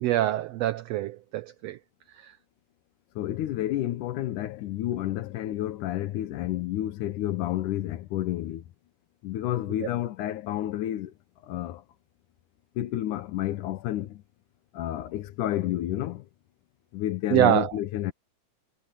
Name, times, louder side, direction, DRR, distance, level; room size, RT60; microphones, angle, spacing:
voice 1, 0.0-1.8 2.2-2.3 17.3-17.7, right 14 dB, 85° right, 1.4 m, -25 dB
voice 2, 3.2-8.6 9.2-11.1 11.4-11.8 12.8-14.2 14.7-16.3 16.9-18.1, left 13 dB, 80° left, 2.4 m, -30 dB
omnidirectional pair, 3.6 m